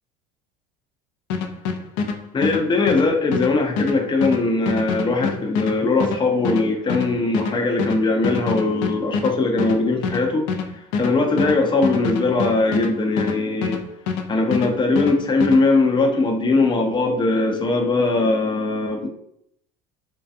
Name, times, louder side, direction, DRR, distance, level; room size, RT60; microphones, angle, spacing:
sound 1, 1.3-14.3 14.5-15.6, left 5 dB, 70° left, 0.4 m, -26 dB
voice 1, 2.3-10.5 11.0-13.8 14.3-19.1, left 3 dB, 25° left, 2 dB, 0.6 m, -20 dB
2.7 x 2.3 x 2.3 m, 0.74 s
supercardioid pair, 90°, 20 cm